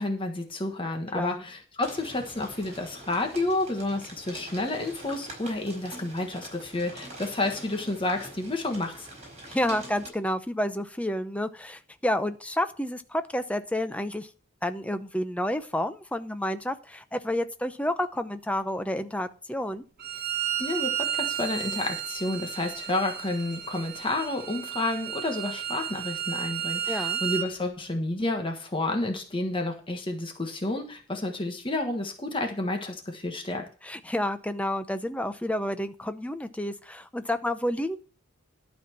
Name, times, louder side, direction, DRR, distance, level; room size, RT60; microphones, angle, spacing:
voice 1, 0.0-9.1 20.6-33.7, left 2 dB, 25° left, 3 dB, 1.4 m, -30 dB
voice 2, 1.1-1.4 9.5-14.3 14.6-19.8 26.9-27.2 33.8-38.0, left 1 dB, 5° left, 10 dB, 0.7 m, -30 dB
sound 1, 1.8-10.1, right 1 dB, 35° right, 4.7 m, -44 dB
Bowed string instrument, 20.0-27.5, right 10 dB, 50° right, 1.2 m, -32 dB
12.0 x 4.4 x 7.3 m, 0.39 s
head